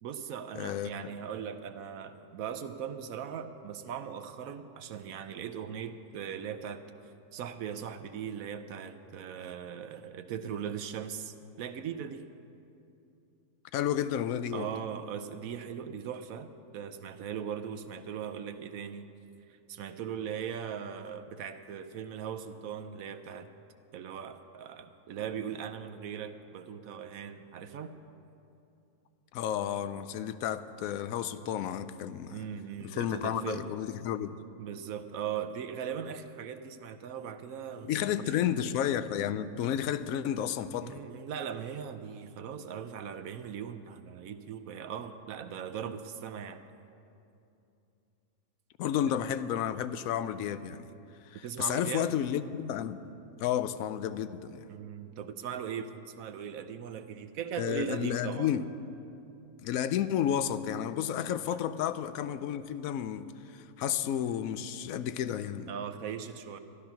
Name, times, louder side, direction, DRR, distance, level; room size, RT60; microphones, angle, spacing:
voice 1, 0.0-6.8 7.3-12.2 14.5-19.1 19.5-23.5 23.9-27.9 32.3-33.7 34.6-38.3 40.8-46.6 51.4-52.1 54.7-58.5 65.7-66.6, right 8 dB, 70° right, 9 dB, 1.1 m, -39 dB
voice 2, 0.6-1.1 13.7-14.7 29.3-32.4 32.8-34.4 37.8-41.0 48.8-50.9 51.2-53.0 53.4-54.7 57.6-58.6 59.6-65.7, left 10 dB, 75° left, 13 dB, 1.0 m, -32 dB
13.5 x 12.0 x 5.8 m, 2.7 s
omnidirectional pair, 1.6 m